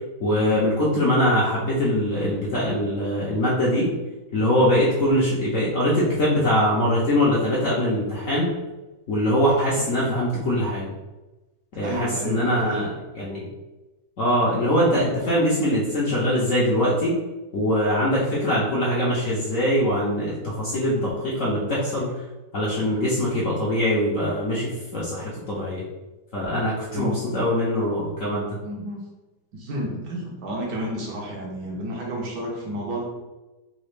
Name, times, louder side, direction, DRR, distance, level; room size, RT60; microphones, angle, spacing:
voice 1, 0.2-3.9 4.3-8.5 9.1-10.9 11.7-13.5 14.2-17.1 17.5-22.1 22.5-25.8 26.3-28.6, equal, 60° left, -7 dB, 0.8 m, -22 dB
voice 2, 11.8-12.8 26.9-27.1 28.6-29.0 29.5-33.0, right 1 dB, 65° right, -2 dB, 1.3 m, -31 dB
4.0 x 2.3 x 3.2 m, 1.1 s
omnidirectional pair, 2.1 m